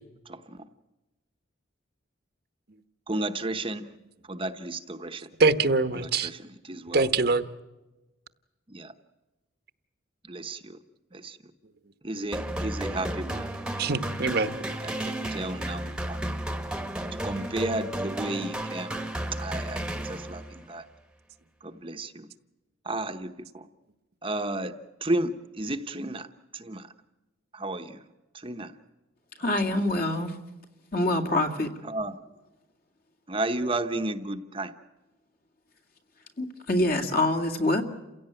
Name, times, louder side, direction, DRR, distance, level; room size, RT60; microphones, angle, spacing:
voice 1, 0.2-0.6 3.1-3.9 4.3-5.3 5.9-7.1 8.7-8.9 10.2-10.8 11.1-11.4 12.0-13.5 14.7-16.2 17.1-19.0 19.3-20.8 21.6-22.3 22.8-23.7 24.2-26.3 26.5-26.9 27.5-28.0 28.3-28.7 29.7-29.8 31.8-32.2 33.3-34.7, right 2 dB, 25° right, 7 dB, 1.0 m, -33 dB
voice 2, 5.4-6.3 6.9-7.4 13.8-14.6, right 3 dB, 50° right, 11 dB, 1.0 m, -23 dB
sound 1, 12.3-20.6, right 1 dB, 5° right, 1.2 m, -33 dB
voice 3, 29.4-30.4 30.9-31.7 36.4-37.8, left 1 dB, 50° left, 5 dB, 2.4 m, -25 dB
29.0 x 16.5 x 9.0 m, 1.1 s
head